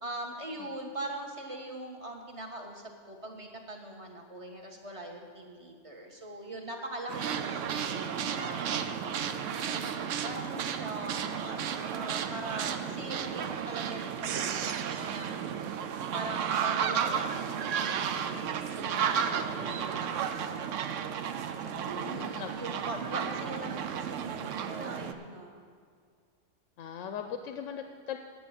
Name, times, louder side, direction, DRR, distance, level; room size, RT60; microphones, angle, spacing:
voice 1, 0.0-9.0 9.6-11.6 11.9-15.4 16.1-20.9 21.7-25.6, right 1 dB, 30° right, 2 dB, 1.2 m, -41 dB
sound 1, 7.1-25.1, right 8 dB, 85° right, 1.0 m, -33 dB
voice 2, 21.8-22.5 26.8-28.2, left 8 dB, 90° left, 6 dB, 1.0 m, -39 dB
9.1 x 6.9 x 8.6 m, 2.1 s
omnidirectional pair, 1.3 m